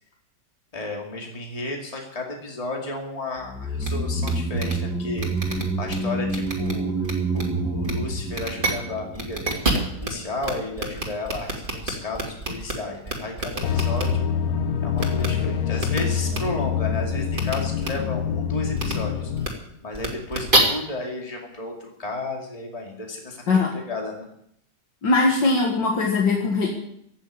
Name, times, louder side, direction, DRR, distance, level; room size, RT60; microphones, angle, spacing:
voice 1, 0.7-6.9 7.3-14.3 14.8-19.3 19.8-24.2, left 2 dB, 20° left, 0 dB, 2.4 m, -33 dB
sound 1, 3.4-9.8 10.1-10.2, right 2 dB, ahead, 1.6 m, -28 dB
sound 2, 3.8-3.9 4.2-4.3 4.6-4.7 5.2-5.9 6.3-6.7 7.0-7.4 7.8-7.9 8.3-8.7 9.1-10.1 10.4-10.5 10.8-12.7 13.1-14.0 15.0-15.3 15.8-16.0 16.3-16.4 17.3-17.5 17.8-17.9 18.8-18.9 19.4-19.5 19.9-20.6, right 2 dB, 30° right, 2.8 m, -26 dB
sound 3, 13.6-19.5, left 7 dB, 60° left, 1.2 m, -25 dB
voice 2, 25.0-26.7, left 3 dB, 80° left, 0 dB, 2.4 m, -20 dB
16.0 x 7.2 x 9.9 m, 0.74 s
omnidirectional pair, 1.9 m